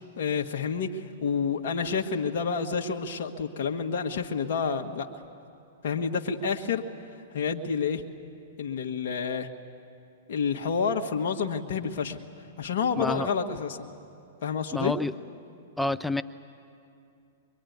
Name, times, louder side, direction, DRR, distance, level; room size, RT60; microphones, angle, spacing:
voice 1, 0.0-5.1 5.8-6.9 7.3-8.1 8.6-9.5 10.3-12.2 12.6-13.9 14.4-14.9, left 6 dB, 60° left, 3 dB, 1.5 m, -29 dB
voice 2, 13.0-13.3 14.7-15.1 15.8-16.2, left 2 dB, 5° left, 11 dB, 0.6 m, -28 dB
24.5 x 23.0 x 9.4 m, 2.6 s
hypercardioid pair, 115°, 0 cm